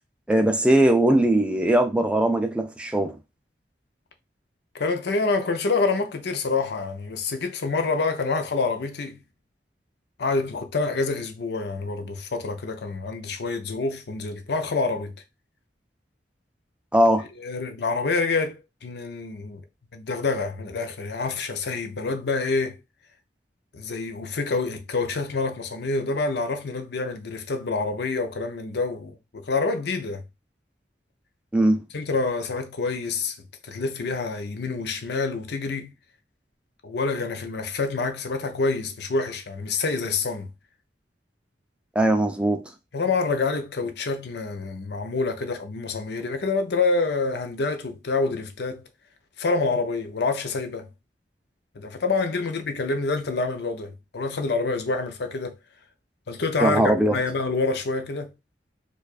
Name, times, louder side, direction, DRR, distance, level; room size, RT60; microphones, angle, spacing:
voice 1, 0.3-3.1 16.9-17.3 31.5-31.8 42.0-42.6 56.6-57.2, right 1 dB, 5° right, 0.4 m, -20 dB
voice 2, 4.7-9.2 10.2-15.1 17.4-19.6 19.9-22.8 23.7-30.2 31.9-33.4 33.6-35.9 36.8-40.5 42.9-48.8 49.4-50.9 51.7-55.6 56.3-58.3, left 3 dB, 65° left, 0.6 m, -27 dB
4.5 x 2.4 x 2.4 m
head